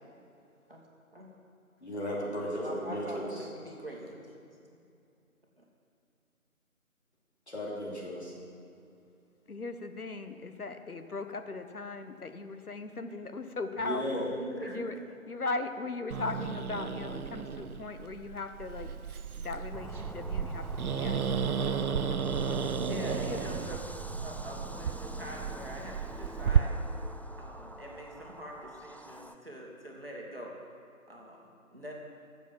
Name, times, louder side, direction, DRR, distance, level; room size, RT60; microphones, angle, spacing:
voice 1, 1.8-3.5 7.5-8.3 13.8-14.3, equal, 50° left, -5 dB, 2.7 m, -35 dB
voice 2, 2.6-4.3 5.6-5.7 14.4-15.0 22.8-23.8 24.2-26.8 27.4-30.5 31.1-31.9, equal, 40° right, -2 dB, 1.6 m, -43 dB
voice 3, 9.5-14.3 14.6-15.0 15.3-18.9 19.4-20.7 20.9-21.2 21.6-22.8 23.3-23.4, left 3 dB, 90° left, 8 dB, 1.1 m, -38 dB
Growling, 16.1-26.6, right 7 dB, 80° right, 0.6 m, -33 dB
sound 1, 19.7-29.4, right 1 dB, 5° left, 0.3 m, -45 dB
11.5 x 7.3 x 7.5 m, 2.6 s
figure-of-eight pair, 180°, 43 cm